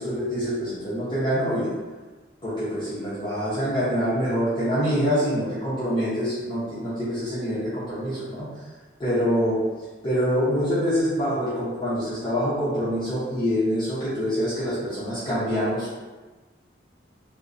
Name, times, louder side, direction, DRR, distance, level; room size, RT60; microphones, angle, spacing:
voice 1, 0.0-1.7 2.4-8.5 9.0-9.6 10.0-16.0, equal, 25° left, -13 dB, 0.7 m, -25 dB
2.5 x 2.0 x 2.5 m, 1.3 s
head